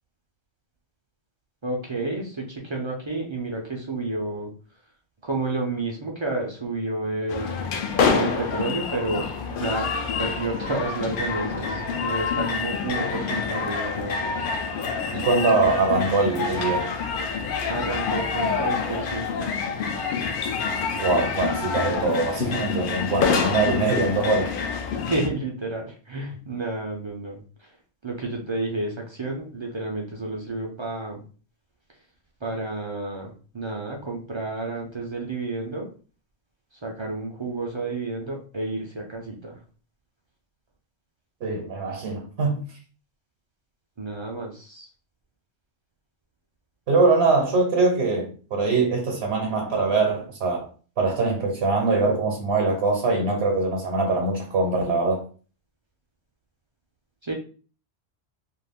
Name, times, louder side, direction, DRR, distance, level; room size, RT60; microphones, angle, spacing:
voice 1, 1.6-4.5 5.2-7.5 8.2-9.9 10.2-14.5 17.6-19.5 25.1-27.7 28.0-31.2 32.4-35.9 36.8-39.6 44.0-44.9 57.2-57.3, right 2 dB, 45° right, 0.4 m, -30 dB
sound 1, 7.3-25.3, left 5 dB, 60° left, 0.6 m, -27 dB
voice 2, 15.1-16.9 21.0-24.5 41.4-42.6 46.9-50.7 51.0-55.2, right 3 dB, 70° right, 0.9 m, -23 dB
2.5 x 2.3 x 3.4 m
omnidirectional pair, 1.1 m